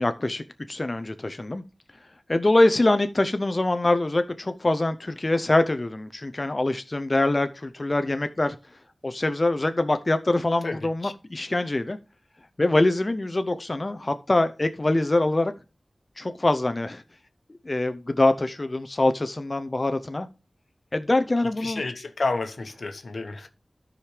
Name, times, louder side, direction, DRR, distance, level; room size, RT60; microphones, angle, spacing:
voice 1, 0.0-1.6 2.3-8.6 9.0-12.0 12.6-15.5 16.2-17.0 17.7-20.3 20.9-21.8, left 2 dB, 40° left, 0.5 m, -24 dB
voice 2, 10.6-11.1 21.6-23.5, left 3 dB, 80° left, 1.0 m, -30 dB
13.0 x 5.0 x 3.2 m
cardioid pair, 40°, 0 cm